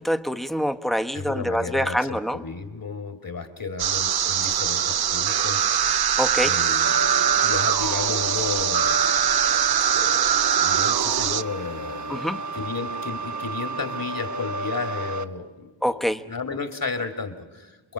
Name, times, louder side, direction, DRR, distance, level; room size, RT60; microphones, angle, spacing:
voice 1, 0.0-2.4 6.2-6.5 12.1-12.4 15.8-16.2, equal, ahead, 6 dB, 1.2 m, -25 dB
voice 2, 1.1-5.7 6.4-6.8 7.2-9.0 9.9-17.9, left 4 dB, 45° left, 7 dB, 2.6 m, -33 dB
sound 1, 3.8-11.4, right 9 dB, 55° right, 0.7 m, -22 dB
sound 2, 6.8-15.2, right 1 dB, 40° right, 1.1 m, -33 dB
28.5 x 22.0 x 6.5 m, 1.2 s
cardioid pair, 45°, 46 cm